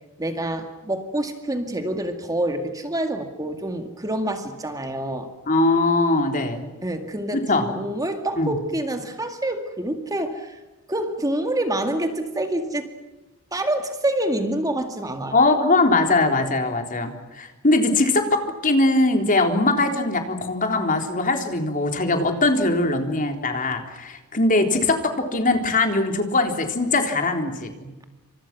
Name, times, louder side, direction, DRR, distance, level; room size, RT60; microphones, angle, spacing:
voice 1, 0.2-5.3 6.8-10.6 10.9-12.9 13.5-15.4, right 1 dB, 15° right, 6 dB, 2.1 m, -27 dB
voice 2, 5.5-6.6 7.3-7.7 8.4-8.5 15.3-28.1, left 2 dB, 35° left, 5 dB, 3.7 m, -21 dB
29.0 x 26.5 x 6.1 m, 1.1 s
head